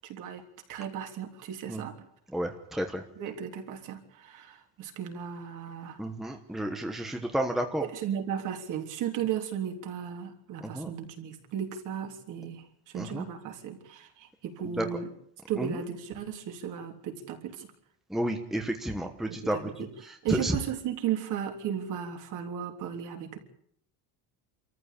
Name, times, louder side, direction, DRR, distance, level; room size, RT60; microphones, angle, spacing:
voice 1, 0.0-0.4 0.7-1.9 3.2-6.0 7.8-15.1 15.5-17.7 19.3-19.9 20.2-23.4, right 9 dB, 50° right, 4 dB, 3.3 m, -35 dB
voice 2, 2.3-3.0 6.0-7.9 10.6-10.9 12.9-13.3 14.8-15.0 15.6-15.8 18.1-19.9 20.3-20.5, right 1 dB, ahead, 4 dB, 1.2 m, -31 dB
26.5 x 14.5 x 8.4 m, 0.68 s
cardioid pair, 180°, 39 cm